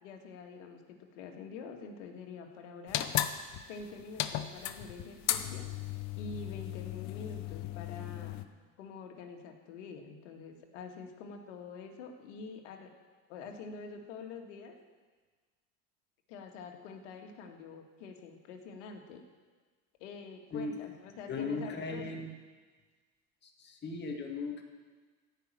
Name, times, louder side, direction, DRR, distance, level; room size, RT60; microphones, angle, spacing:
voice 1, 0.0-3.1 3.7-5.7 6.2-8.4 8.8-12.9 13.3-14.8 16.3-19.2 20.0-22.2, left 4 dB, 80° left, 3 dB, 1.9 m, -46 dB
sound 1, 2.9-8.4, left 12 dB, 50° left, 0.8 m, -36 dB
voice 2, 21.3-22.3 23.4-24.6, left 3 dB, 30° left, 2 dB, 2.0 m, -37 dB
14.5 x 5.8 x 8.9 m, 1.4 s
supercardioid pair, 110°, 36 cm